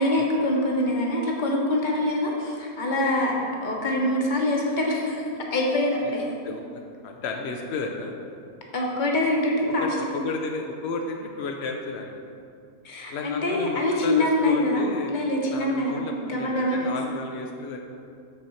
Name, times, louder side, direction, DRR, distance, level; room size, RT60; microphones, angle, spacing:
voice 1, 0.0-3.3 3.6-6.2 8.7-10.1 12.8-16.0 16.3-17.0, left 1 dB, 35° left, -1 dB, 0.9 m, -24 dB
voice 2, 6.4-8.1 9.8-12.2 13.1-15.1 15.5-17.8, left 3 dB, 85° left, 2 dB, 0.5 m, -33 dB
6.7 x 4.2 x 6.3 m, 2.4 s
omnidirectional pair, 1.7 m